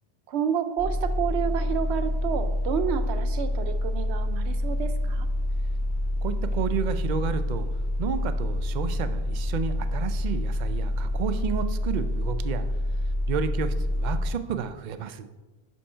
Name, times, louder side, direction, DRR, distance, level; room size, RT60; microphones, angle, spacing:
voice 1, 0.3-5.3, right 8 dB, 80° right, 10 dB, 0.9 m, -30 dB
sound 1, 0.8-14.3, left 1 dB, 75° left, 1.4 m, -27 dB
voice 2, 6.2-7.7 8.0-12.7 13.3-15.3, right 6 dB, 55° right, 10 dB, 0.5 m, -31 dB
5.5 x 5.4 x 5.5 m, 1.1 s
omnidirectional pair, 1.1 m